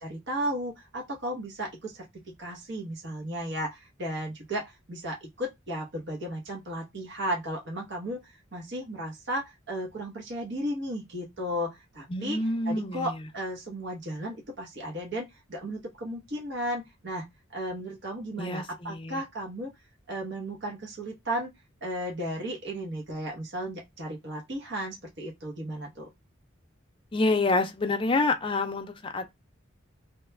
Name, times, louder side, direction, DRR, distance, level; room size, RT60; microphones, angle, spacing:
voice 1, 0.0-8.2 8.5-12.4 12.6-17.3 17.5-19.7 20.1-21.5 21.8-26.1, equal, 55° right, 0.9 m, -34 dB
voice 2, 12.1-13.1 18.4-19.2 27.1-29.3, left 2 dB, 25° left, 0.4 m, -27 dB
2.9 x 2.3 x 3.3 m
head